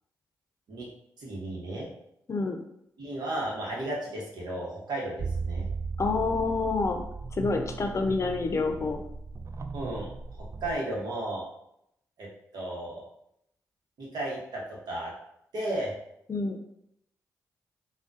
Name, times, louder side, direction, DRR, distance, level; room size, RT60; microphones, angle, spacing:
voice 1, 1.2-1.9 3.0-5.7 9.7-11.5 12.2-13.1 14.0-15.1 15.5-15.9, right 1 dB, 70° right, -3 dB, 1.0 m, -34 dB
sound 1, 5.2-10.7, right 4 dB, 40° right, 0.3 m, -36 dB
voice 2, 6.0-7.0 7.3-9.0 16.3-16.6, left 3 dB, 45° left, 5 dB, 0.6 m, -28 dB
3.5 x 2.3 x 2.6 m, 0.76 s
supercardioid pair, 45°, 7 cm